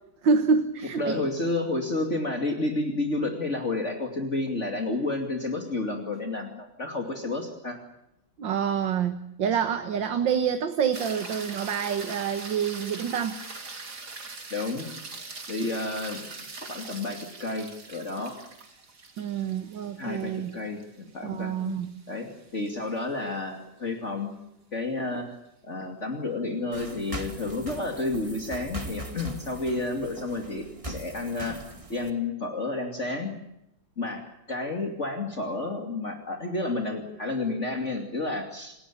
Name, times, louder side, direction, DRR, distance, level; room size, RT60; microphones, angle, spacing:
voice 1, 0.2-1.3 8.4-13.4 19.2-20.5 21.2-21.9, right 6 dB, 70° right, 8 dB, 2.1 m, -27 dB
voice 2, 1.0-7.8 14.5-14.9 15.5-16.3 16.6-18.4 20.0-24.3 24.7-25.3 25.6-31.6 31.9-33.3 34.0-38.7, left 2 dB, 35° left, 3 dB, 3.0 m, -31 dB
sound 1, 10.9-23.3 27.8-27.9, right 3 dB, 55° right, 3.4 m, -42 dB
sound 2, 26.7-32.1, right 1 dB, 15° right, 2.2 m, -40 dB
29.5 x 17.0 x 8.6 m, 0.85 s
omnidirectional pair, 2.1 m